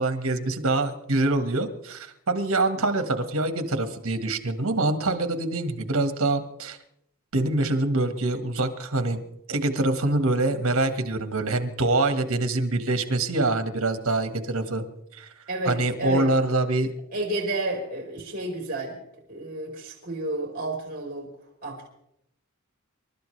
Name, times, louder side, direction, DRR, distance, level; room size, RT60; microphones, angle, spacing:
voice 1, 0.0-6.8 7.3-9.2 9.5-14.8 15.2-15.3 15.7-16.9, right 2 dB, 65° right, 8 dB, 1.7 m, -25 dB
voice 2, 15.5-16.3 17.1-19.0 19.3-21.3 21.6-21.9, right 1 dB, 40° right, -1 dB, 4.5 m, -30 dB
28.0 x 13.0 x 3.3 m, 0.77 s
head